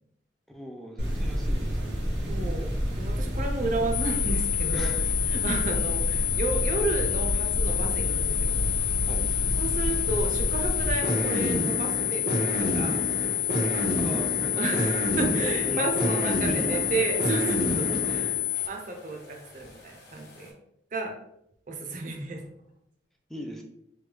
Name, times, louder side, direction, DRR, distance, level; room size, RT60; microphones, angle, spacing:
voice 1, 0.5-2.0 4.7-5.1 9.1-9.2 14.0-14.7 15.1-15.3 15.6-16.9 17.8-18.1 23.3-23.6, equal, ahead, 1 dB, 0.4 m, -38 dB
sound 1, 1.0-18.4, equal, 75° right, 0.9 m, -29 dB
voice 2, 2.3-4.9 5.3-8.6 9.6-14.2 14.6-18.3 18.7-20.5 20.9-21.2 21.7-22.4, right 3 dB, 45° right, 2 dB, 0.6 m, -32 dB
sound 2, 3.9-18.7, left 13 dB, 80° left, 0.4 m, -29 dB
sound 3, 8.4-20.5, left 2 dB, 60° left, 0.9 m, -51 dB
3.3 x 2.2 x 3.2 m, 0.76 s
head